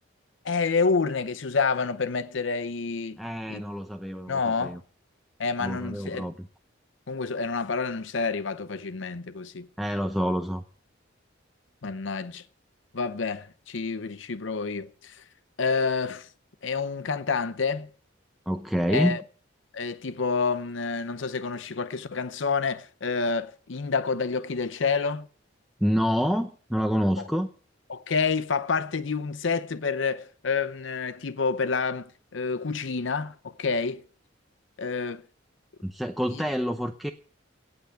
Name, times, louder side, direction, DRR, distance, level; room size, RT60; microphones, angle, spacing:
voice 1, 0.4-3.2 3.5-3.6 4.3-4.8 5.4-6.3 7.1-9.7 11.8-12.4 12.9-15.2 15.6-16.3 16.6-17.9 18.9-19.2 19.7-25.2 27.9-32.1 32.3-34.0 34.8-35.2, left 4 dB, 70° left, 0.7 m, -28 dB
voice 2, 3.2-4.8 5.6-6.5 9.8-10.6 18.5-19.2 25.8-27.5 35.8-37.1, equal, ahead, 0.7 m, -27 dB
17.5 x 5.8 x 9.2 m
head